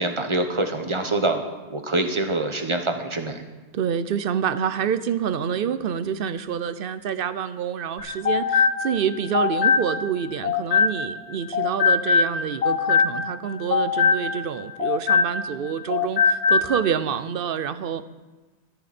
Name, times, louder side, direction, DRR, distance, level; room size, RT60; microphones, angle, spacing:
voice 1, 0.0-1.4 1.7-3.4, right 2 dB, 25° right, 5 dB, 1.3 m, -25 dB
voice 2, 3.7-18.0, right 8 dB, 60° right, 13 dB, 0.8 m, -27 dB
sound 1, 8.0-11.2 11.5-15.6 15.9-16.7, left 5 dB, 70° left, 3.6 m, -22 dB
13.5 x 13.5 x 4.3 m, 1.2 s
omnidirectional pair, 1.1 m